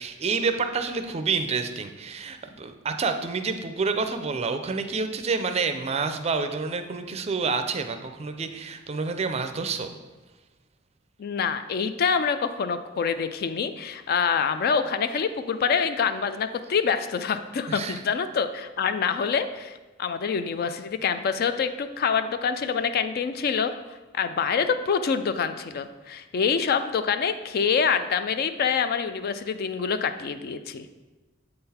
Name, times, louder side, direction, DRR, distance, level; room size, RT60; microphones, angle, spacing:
voice 1, 0.0-9.9 17.7-18.0, right 4 dB, 30° right, 8 dB, 0.4 m, -28 dB
voice 2, 11.2-30.9, left 6 dB, 50° left, 10 dB, 0.3 m, -26 dB
7.7 x 3.8 x 4.2 m, 1.2 s
head